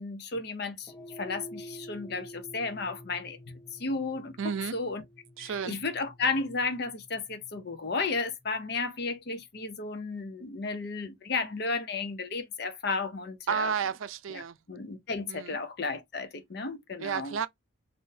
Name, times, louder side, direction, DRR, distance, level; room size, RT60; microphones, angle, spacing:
voice 1, 0.0-5.0 5.4-13.7 14.3-14.4 14.7-17.4, left 4 dB, 50° left, 0.6 m, -33 dB
sound 1, 0.8-9.3, equal, 5° left, 0.5 m, -49 dB
voice 2, 4.4-4.8 5.4-5.8 13.5-14.6 15.3-15.6 17.0-17.5, right 7 dB, 80° right, 0.4 m, -32 dB
3.7 x 2.6 x 2.6 m
head